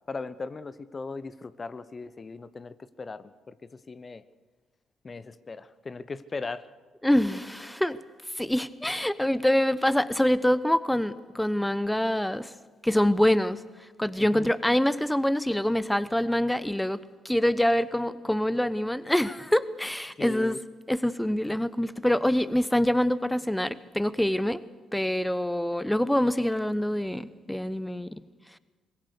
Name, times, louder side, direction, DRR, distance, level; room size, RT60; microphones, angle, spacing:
voice 1, 0.1-4.2 5.0-6.7 14.2-14.5 20.2-20.6, left 4 dB, 35° left, 15 dB, 1.0 m, -38 dB
voice 2, 7.0-8.0 8.4-12.5 12.8-13.6 14.0-20.5 20.9-24.6 24.9-28.2, left 1 dB, 5° left, 16 dB, 0.9 m, -25 dB
25.0 x 22.0 x 6.7 m, 1.3 s
figure-of-eight pair, 45°, 0 cm